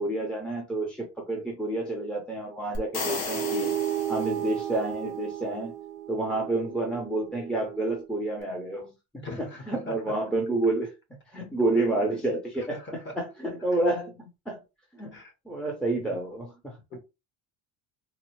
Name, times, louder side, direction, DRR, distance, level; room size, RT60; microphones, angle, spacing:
voice 1, 0.0-3.7 4.1-5.7 6.1-10.9 11.3-14.6 15.0-15.1 15.5-16.8, right 2 dB, ahead, 0.6 m, -29 dB
sound 1, 2.7-4.8, left 3 dB, 60° left, 1.2 m, -35 dB
sound 2, 3.3-8.1, right 12 dB, 65° right, 0.6 m, -34 dB
voice 2, 9.2-9.9 11.7-11.9 12.6-13.1 15.1-15.3 16.9-17.0, left 2 dB, 25° left, 1.1 m, -40 dB
4.0 x 2.1 x 3.0 m
cardioid pair, 140°, 43 cm